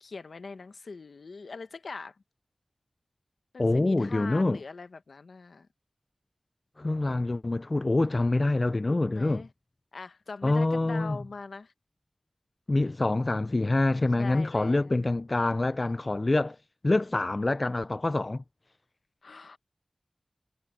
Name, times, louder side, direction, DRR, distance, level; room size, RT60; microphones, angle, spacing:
voice 1, 0.0-2.1 3.5-5.7 8.9-9.5 9.9-11.7 14.2-15.1 19.2-19.6, left 4 dB, 85° left, 1.1 m, -42 dB
voice 2, 3.6-4.6 6.8-9.4 10.4-11.2 12.7-16.6 16.8-18.4, left 2 dB, 45° left, 0.5 m, -26 dB
wide cardioid pair, 55°, 0 cm